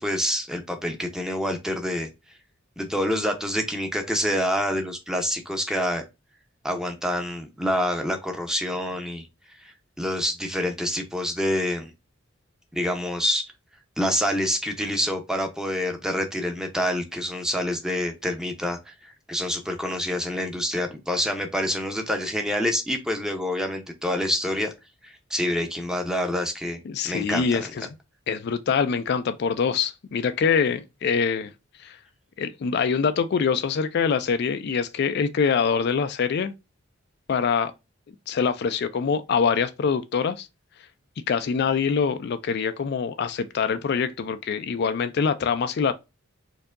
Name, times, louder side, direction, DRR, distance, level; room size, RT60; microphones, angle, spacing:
voice 1, 0.0-2.1 2.8-6.0 6.6-9.3 9.6-11.9 12.7-13.4 14.0-18.9 19.3-24.7 25.0-26.8 27.0-27.7, equal, 5° right, 0.7 m, -27 dB
voice 2, 26.9-27.9 28.3-31.5 31.8-32.0 32.4-36.5 37.3-37.7 38.3-40.5 41.3-45.9, left 6 dB, 55° left, 0.3 m, -24 dB
4.5 x 2.7 x 2.4 m
head